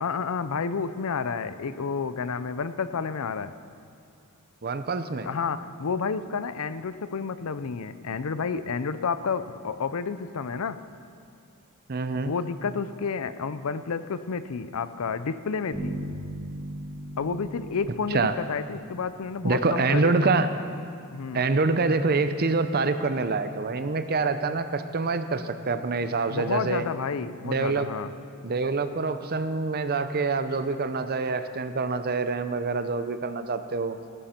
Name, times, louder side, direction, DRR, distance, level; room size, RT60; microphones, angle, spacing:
voice 1, 0.0-3.5 5.2-10.8 12.3-16.0 17.2-20.4 21.1-21.4 26.3-28.1, left 5 dB, 75° left, 13 dB, 0.5 m, -30 dB
voice 2, 4.6-5.3 11.9-12.3 18.1-18.3 19.4-20.5 21.3-26.9 27.4-27.9 28.4-34.0, right 3 dB, 45° right, 10 dB, 0.6 m, -26 dB
sound 1, 15.7-19.4, right 1 dB, 5° right, 2.9 m, -38 dB
17.5 x 13.0 x 4.4 m, 2.4 s
head